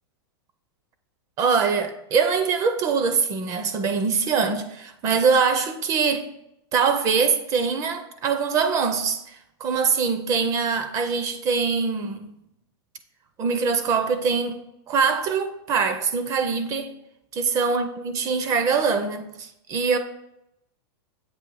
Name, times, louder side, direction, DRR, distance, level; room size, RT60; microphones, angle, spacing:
voice 1, 1.4-6.3 6.7-12.3 13.4-14.6 14.9-16.9 17.3-20.0, right 5 dB, 25° right, 0.4 m, -23 dB
7.6 x 2.7 x 5.3 m
supercardioid pair, 150°, 13 cm